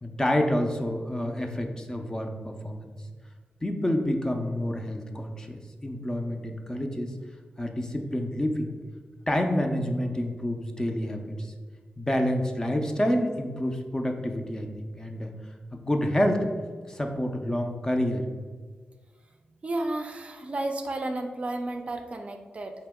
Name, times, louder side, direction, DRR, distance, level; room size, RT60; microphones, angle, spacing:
voice 1, 0.0-2.9 3.6-7.1 7.6-8.8 9.3-11.5 12.0-15.3 15.7-16.5 16.9-18.3, left 1 dB, 20° left, 3 dB, 0.4 m, -28 dB
voice 2, 19.6-22.7, right 2 dB, 40° right, 4 dB, 0.4 m, -32 dB
4.5 x 2.9 x 3.5 m, 1.6 s
wide cardioid pair, 105°, 3 cm